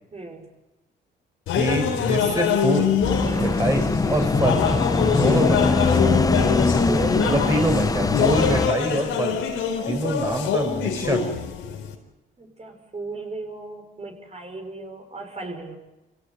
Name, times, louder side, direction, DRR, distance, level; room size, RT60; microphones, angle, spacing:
voice 1, 0.1-0.5 3.2-3.6 4.2-4.4 6.9-7.8 9.7-10.0 12.4-15.8, right 3 dB, 30° right, 4 dB, 6.2 m, -36 dB
sound 1, 1.5-11.9, left 8 dB, 90° left, 4.3 m, -25 dB
voice 2, 1.5-3.0 3.3-4.7 5.0-5.8 7.3-11.3, right 1 dB, 15° right, 5 dB, 6.0 m, -25 dB
sound 2, 3.0-8.7, left 3 dB, 20° left, 1.0 m, -22 dB
26.5 x 17.0 x 9.5 m, 1.0 s
cardioid pair, 90°, 20 cm